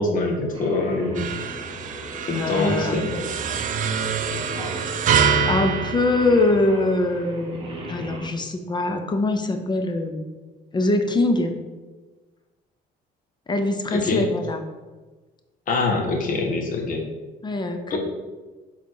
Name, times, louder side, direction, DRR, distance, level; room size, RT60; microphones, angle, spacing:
voice 1, 0.0-1.3 2.3-3.1 13.9-14.2 15.7-17.0 17.9-18.0, left 2 dB, 55° left, 1 dB, 1.5 m, -24 dB
Singing, 0.5-8.3, equal, 30° right, 2.0 m, -37 dB
sound 1, 1.1-6.9, right 6 dB, 50° right, 0.6 m, -26 dB
voice 2, 2.3-3.4 4.5-5.1 5.5-10.2 10.7-11.5 13.5-14.6 17.4-18.0, left 2 dB, 25° left, 6 dB, 0.7 m, -23 dB
6.7 x 4.0 x 4.7 m, 1.3 s
cardioid pair, 110°, 17 cm